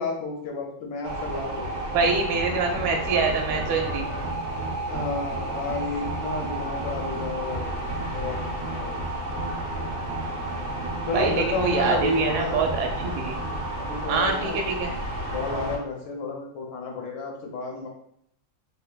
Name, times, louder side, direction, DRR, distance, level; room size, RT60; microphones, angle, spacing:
voice 1, 0.0-1.7 2.5-2.6 4.9-7.8 8.1-9.0 11.0-12.7 13.8-14.6 15.3-17.9, left 3 dB, 75° left, 0 dB, 1.4 m, -31 dB
sound 1, 1.0-15.8, right 1 dB, 60° right, 0.7 m, -31 dB
voice 2, 1.9-4.1 11.1-13.4 14.1-14.9, right 5 dB, 80° right, 2 dB, 1.3 m, -25 dB
3.3 x 3.2 x 2.3 m, 0.73 s
omnidirectional pair, 2.3 m